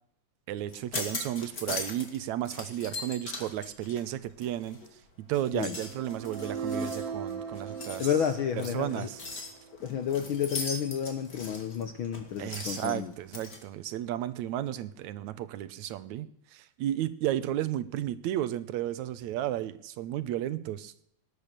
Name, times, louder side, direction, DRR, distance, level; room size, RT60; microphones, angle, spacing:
voice 1, 0.5-4.8 5.3-8.2 8.5-9.2 12.4-20.9, right 12 dB, 80° right, 15 dB, 2.2 m, -33 dB
sound 1, 0.7-2.2 2.5-4.9 5.3-13.6, left 3 dB, 35° left, 3.0 m, -40 dB
sound 2, 5.7-9.8, right 5 dB, 60° right, 2.6 m, -38 dB
voice 2, 8.0-9.1 9.8-13.1, left 8 dB, 65° left, 9 dB, 1.3 m, -31 dB
19.0 x 11.0 x 6.7 m, 0.73 s
omnidirectional pair, 3.3 m